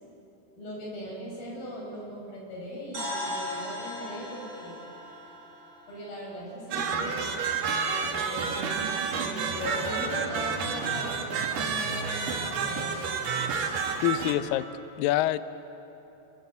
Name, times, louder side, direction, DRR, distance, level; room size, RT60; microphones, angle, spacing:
voice 1, 0.6-4.8 5.9-7.3 8.0-13.2, equal, 55° left, -2 dB, 8.8 m, -39 dB
sound 1, 2.9-6.9, left 1 dB, 15° right, 7.6 m, -38 dB
sound 2, 6.7-14.3, right 5 dB, 60° right, 3.1 m, -30 dB
sound 3, 8.4-13.8, right 6 dB, 75° right, 3.4 m, -41 dB
voice 2, 14.0-14.6 15.0-15.4, left 14 dB, 90° left, 13 dB, 2.0 m, -25 dB
30.0 x 22.0 x 8.3 m, 3.0 s
omnidirectional pair, 4.9 m